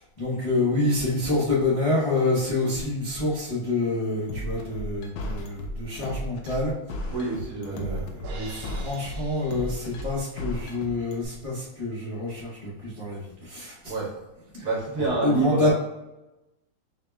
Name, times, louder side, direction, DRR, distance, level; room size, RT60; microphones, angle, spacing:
voice 1, 0.0-7.1 7.7-13.9 14.5-14.7 15.2-15.7, left 2 dB, 65° left, -8 dB, 0.3 m, -27 dB
sound 1, 4.3-11.3, left 1 dB, 80° left, 1.4 m, -34 dB
voice 2, 7.1-8.0 13.9-14.1 14.6-15.7, right 4 dB, 50° right, -4 dB, 1.1 m, -27 dB
Crash cymbal, 8.2-10.5, right 5 dB, 75° right, 1.4 m, -45 dB
5.5 x 3.3 x 2.3 m, 0.97 s
omnidirectional pair, 2.3 m